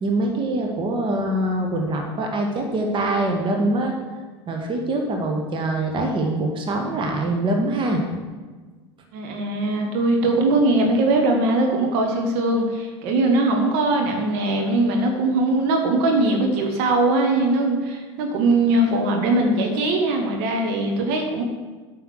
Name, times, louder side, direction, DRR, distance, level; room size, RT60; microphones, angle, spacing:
voice 1, 0.0-3.9 4.5-8.0, right 1 dB, 35° right, 2 dB, 1.8 m, -24 dB
voice 2, 9.1-21.4, right 2 dB, 55° right, 2 dB, 1.9 m, -21 dB
9.4 x 5.6 x 6.6 m, 1.4 s
hypercardioid pair, 80°, 15 cm